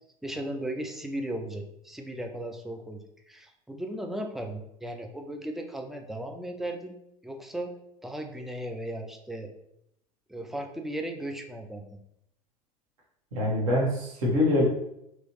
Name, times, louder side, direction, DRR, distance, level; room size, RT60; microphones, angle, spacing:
voice 1, 0.2-7.0 7.2-7.7 8.0-9.5 10.3-12.0, right 1 dB, ahead, 4 dB, 0.3 m, -36 dB
voice 2, 13.3-14.6, left 1 dB, 60° right, -3 dB, 1.2 m, -24 dB
3.0 x 3.0 x 2.8 m, 0.79 s
figure-of-eight pair, 75°, 20 cm